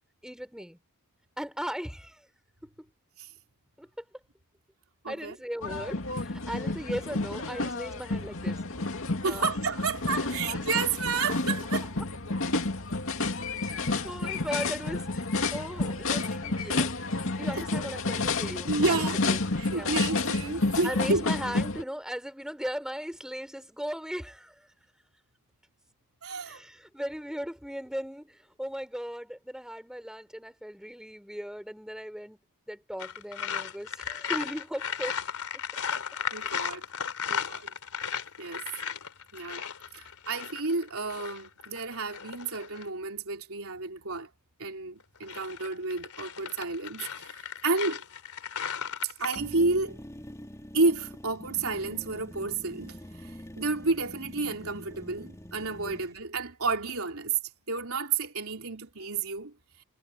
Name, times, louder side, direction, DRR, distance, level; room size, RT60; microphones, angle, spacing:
voice 1, 0.2-0.8 1.4-2.2 3.8-3.9 5.1-8.6 9.2-9.5 13.2-15.3 15.5-16.9 17.3-19.4 19.7-20.0 20.8-24.5 26.5-28.3 28.6-32.4 32.7-35.1 35.7-36.0, equal, 5° right, 5.9 m, -38 dB
voice 2, 5.0-5.4 9.2-11.9 16.1-16.3 17.6-17.7 18.7-19.2 19.6-21.3 26.2-26.6 36.3-36.8 37.3-37.7 38.4-38.6 39.3-39.6 39.9-44.3 44.6-48.0 49.0-50.0 50.7-57.4 57.7-59.5, right 3 dB, 65° right, 3.8 m, -31 dB
sound 1, 5.6-21.8, left 3 dB, 65° left, 2.4 m, -30 dB
sound 2, 33.0-42.9 45.0-49.4, left 8 dB, 80° left, 3.2 m, -36 dB
sound 3, 49.4-56.1, equal, 15° left, 3.8 m, -45 dB
head